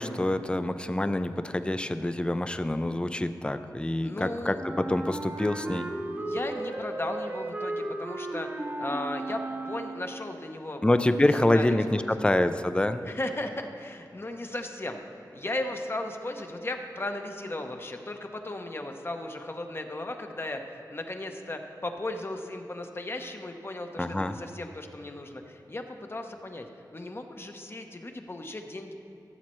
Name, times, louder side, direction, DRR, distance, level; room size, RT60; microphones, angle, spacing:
voice 1, 0.0-5.9 10.8-13.0 24.0-24.4, left 1 dB, 15° left, 10 dB, 0.4 m, -26 dB
voice 2, 4.0-4.6 6.2-10.8 11.5-12.3 13.1-15.0 15.3-26.7 26.9-28.9, left 2 dB, 30° left, 5 dB, 0.8 m, -36 dB
Wind instrument woodwind instrument, 4.6-10.4, right 2 dB, 25° right, 0.7 m, -35 dB
15.0 x 7.3 x 3.1 m, 2.9 s
wide cardioid pair, 65°, 7 cm